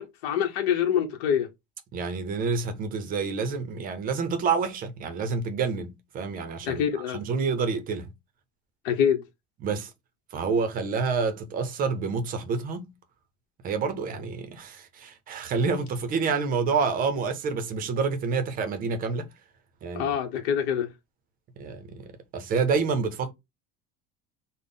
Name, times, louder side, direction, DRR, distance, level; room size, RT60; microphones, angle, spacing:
voice 1, 0.0-1.5 6.6-7.2 8.8-9.2 19.9-20.9, left 8 dB, 90° left, 0.8 m, -25 dB
voice 2, 1.9-6.8 7.1-8.1 9.6-9.9 10.3-12.9 13.6-19.3 19.8-20.2 21.6-23.3, right 5 dB, 30° right, 0.5 m, -28 dB
3.5 x 2.0 x 3.7 m
cardioid pair, 170°, 31 cm